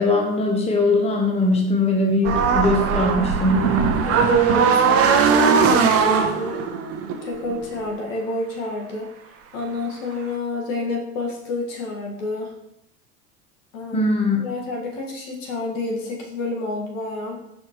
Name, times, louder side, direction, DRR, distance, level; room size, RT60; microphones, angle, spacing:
voice 1, 0.0-3.8 13.9-14.4, left 2 dB, 15° left, 1 dB, 1.0 m, -20 dB
sound 1, 2.2-7.8, right 6 dB, 35° right, 0.8 m, -19 dB
voice 2, 4.1-6.6 7.2-9.1 9.5-12.5 13.7-14.1 14.4-17.4, left 2 dB, 70° left, 0 dB, 1.8 m, -29 dB
6.1 x 5.2 x 3.1 m, 0.82 s
hypercardioid pair, 100°, 41 cm